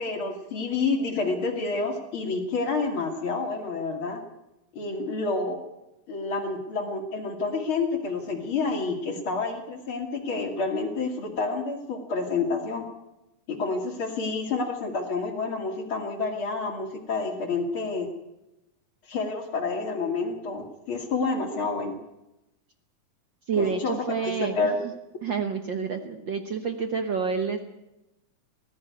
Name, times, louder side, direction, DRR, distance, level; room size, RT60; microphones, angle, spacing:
voice 1, 0.0-4.2 4.7-5.6 6.1-12.9 13.5-18.1 19.1-22.0 23.6-23.9 24.2-24.8, left 4 dB, 45° left, 4 dB, 3.0 m, -29 dB
voice 2, 23.5-24.6 25.2-27.6, right 5 dB, 55° right, 7 dB, 1.3 m, -28 dB
19.5 x 14.0 x 9.5 m, 0.93 s
omnidirectional pair, 3.6 m